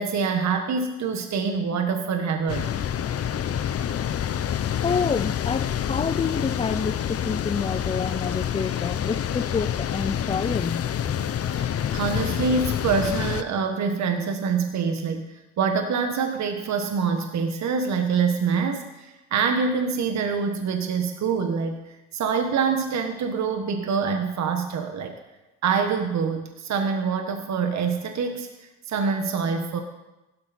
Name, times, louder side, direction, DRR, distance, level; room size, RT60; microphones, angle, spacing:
voice 1, 0.0-2.7 11.4-15.2 15.6-21.8 22.1-25.2 25.6-29.8, right 5 dB, 65° right, 5 dB, 1.4 m, -25 dB
sound 1, 2.5-13.4, left 9 dB, 50° left, 0.8 m, -27 dB
voice 2, 4.8-10.9, left 5 dB, 20° left, 16 dB, 0.5 m, -28 dB
15.5 x 13.0 x 4.3 m, 1.0 s
cardioid pair, 90°, 30 cm